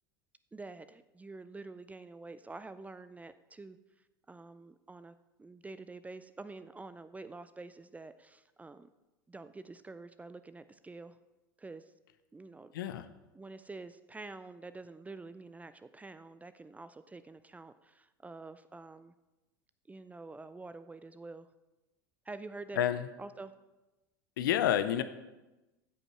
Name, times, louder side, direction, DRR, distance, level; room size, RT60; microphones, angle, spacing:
voice 1, 0.5-3.8 4.3-8.9 9.3-11.2 11.6-11.9 12.3-12.7 13.3-19.1 19.9-21.5 22.2-22.8 23.2-23.5, right 3 dB, 15° right, 12 dB, 0.5 m, -47 dB
voice 2, 12.7-13.1 22.8-23.0 24.4-25.0, left 11 dB, 75° left, 11 dB, 0.6 m, -29 dB
15.0 x 5.3 x 4.3 m, 1.0 s
hypercardioid pair, 85°, 11 cm